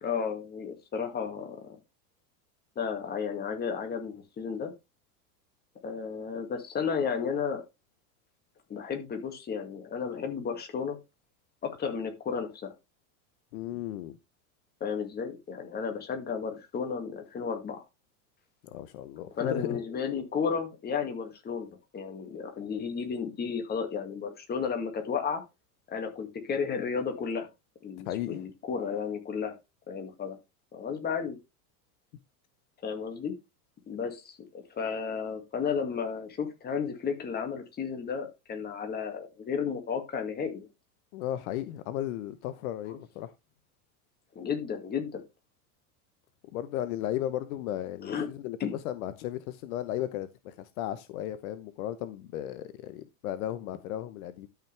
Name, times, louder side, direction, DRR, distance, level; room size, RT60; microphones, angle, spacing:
voice 1, 0.0-1.8 2.8-4.7 5.8-7.6 8.7-11.0 11.6-12.7 14.8-17.8 19.4-25.4 25.9-27.5 27.8-29.5 29.9-30.4 30.7-31.4 32.8-33.3 33.9-40.7 42.9-43.0 44.3-45.2 48.0-48.3 48.6-48.7, left 6 dB, 20° left, 2.2 m, -33 dB
voice 2, 13.5-14.2 18.7-19.8 28.1-28.4 41.1-43.3 46.5-54.5, left 12 dB, 65° left, 1.1 m, -35 dB
12.5 x 5.9 x 3.4 m
supercardioid pair, 150°, 47 cm